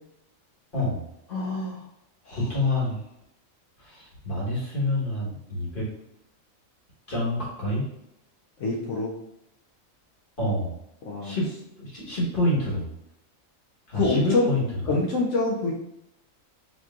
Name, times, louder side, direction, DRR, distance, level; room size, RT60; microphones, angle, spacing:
voice 1, 1.3-1.8 2.3-2.4 8.6-9.1 11.0-11.4 13.9-14.5 14.9-15.7, left 3 dB, 70° left, -2 dB, 0.9 m, -25 dB
voice 2, 2.3-3.0 3.8-5.9 7.1-7.9 10.4-10.7 11.2-11.5 11.8-12.9 13.9-15.0, left 1 dB, 40° left, -6 dB, 1.5 m, -27 dB
4.3 x 3.0 x 2.4 m, 0.81 s
omnidirectional pair, 1.4 m